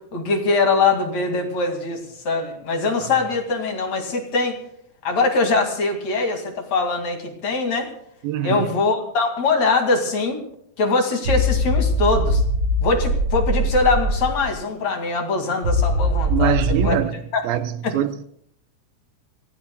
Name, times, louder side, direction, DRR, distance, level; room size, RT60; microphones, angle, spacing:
voice 1, 0.1-4.6 5.0-7.9 8.4-10.4 10.8-12.4 12.8-17.0 17.3-17.4 17.8-18.0, left 3 dB, 50° left, 3.3 m, -22 dB
voice 2, 8.2-8.7 16.3-17.2 17.4-18.2, right 11 dB, 80° right, 2.5 m, -23 dB
sound 1, 11.2-14.5 15.6-16.9, left 1 dB, 45° right, 1.2 m, -21 dB
27.5 x 17.5 x 2.3 m
omnidirectional pair, 4.2 m